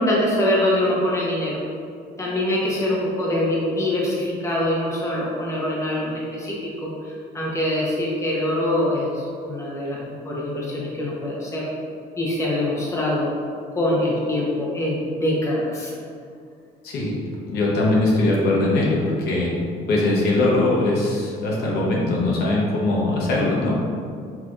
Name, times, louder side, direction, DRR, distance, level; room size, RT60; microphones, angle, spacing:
voice 1, 0.0-1.6 2.2-10.0 10.2-11.7 12.2-13.3 13.8-15.9, left 1 dB, 15° left, -5 dB, 1.0 m, -24 dB
voice 2, 16.8-17.1 17.5-19.5 19.9-23.8, left 2 dB, 70° left, -4 dB, 1.0 m, -21 dB
5.7 x 3.0 x 2.5 m, 2.3 s
cardioid pair, 110°, 17 cm